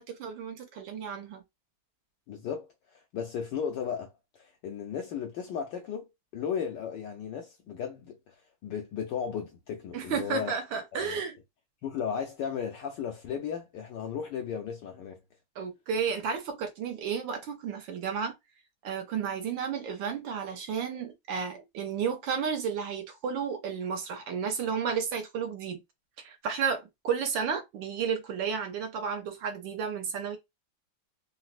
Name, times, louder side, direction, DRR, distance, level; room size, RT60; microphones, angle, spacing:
voice 1, 0.0-1.4 9.9-11.4 15.6-18.3 18.8-25.8 26.2-30.4, right 6 dB, 70° right, 1.2 m, -32 dB
voice 2, 2.3-10.5 10.9-11.2 11.8-15.2, left 7 dB, 75° left, 1.0 m, -35 dB
4.0 x 2.1 x 2.5 m
omnidirectional pair, 2.4 m